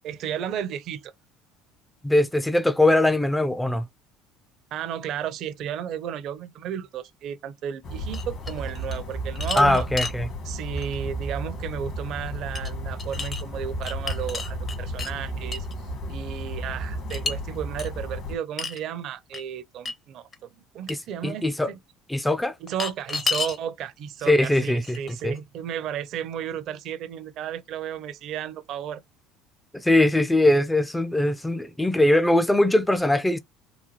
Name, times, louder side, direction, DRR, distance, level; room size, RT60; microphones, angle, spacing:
voice 1, 0.0-1.1 4.7-9.9 10.4-15.7 16.1-20.5 20.7-21.8 22.6-29.0, right 9 dB, 60° right, 0.6 m, -33 dB
voice 2, 2.0-3.9 9.6-10.3 20.9-21.0 21.2-21.7 22.1-22.5 24.3-25.0 25.2-25.3 29.7-33.4, left 1 dB, 5° left, 0.5 m, -21 dB
sound 1, 7.8-18.3, right 1 dB, 55° left, 1.7 m, -33 dB
sound 2, 8.1-9.0 9.3-10.2 10.8-11.0 12.5-12.7 13.0-13.4 13.8-15.1 15.5-15.7 17.1-17.3 17.8-17.9 18.6-18.8 19.3-19.4 19.8-19.9 20.3-20.4 20.9-21.0 22.7-23.6 24.4-24.5 24.8-25.4, left 4 dB, 35° left, 0.8 m, -31 dB
3.9 x 2.3 x 3.0 m
supercardioid pair, 85°, 0 cm